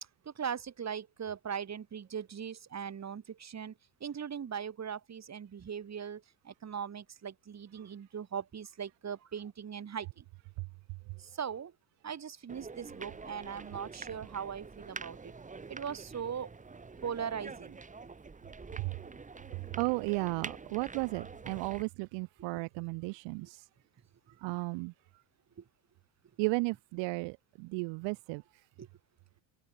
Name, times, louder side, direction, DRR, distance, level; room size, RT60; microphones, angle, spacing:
voice 1, 0.4-3.7 4.0-6.2 6.5-10.1 11.4-11.7 12.0-15.2 15.7-16.5 17.0-17.8 22.4-22.5 23.4-23.5 28.8-28.9, right 7 dB, 35° right, 5.4 m, -39 dB
sound 1, 12.5-21.8, right 4 dB, 15° right, 1.8 m, -46 dB
voice 2, 19.8-23.7 24.4-24.9 26.4-28.4, right 28 dB, 65° right, 1.9 m, -34 dB
hypercardioid pair, 85°, 46 cm